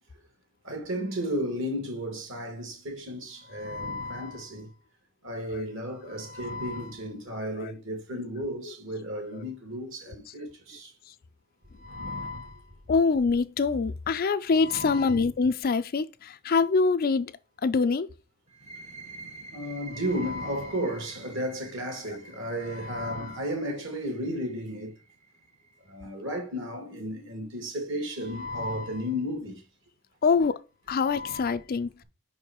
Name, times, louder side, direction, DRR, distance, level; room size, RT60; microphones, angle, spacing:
voice 1, 0.6-4.7 5.2-10.9 11.8-12.6 14.5-15.1 19.5-24.9 25.9-29.6 31.0-31.5, equal, 60° right, 2.3 m, -33 dB
voice 2, 12.9-17.3 17.6-18.1 30.2-30.5 30.9-31.9, left 4 dB, 45° left, 0.4 m, -24 dB
sound 1, 18.5-25.9, right 3 dB, 30° right, 0.8 m, -49 dB
5.6 x 4.7 x 4.4 m
head